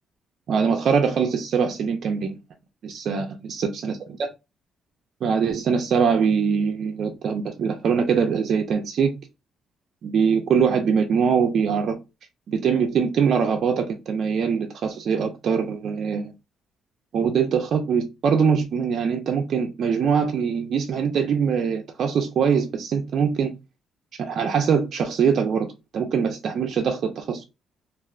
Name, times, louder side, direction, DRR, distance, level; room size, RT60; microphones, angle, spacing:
voice 1, 0.5-2.4 2.8-4.3 5.2-9.1 10.0-12.0 12.5-16.3 17.1-23.5 24.2-25.7 25.9-27.4, right 6 dB, 60° right, 0.4 m, -23 dB
3.2 x 2.4 x 2.3 m
cardioid pair, 90°, 0 cm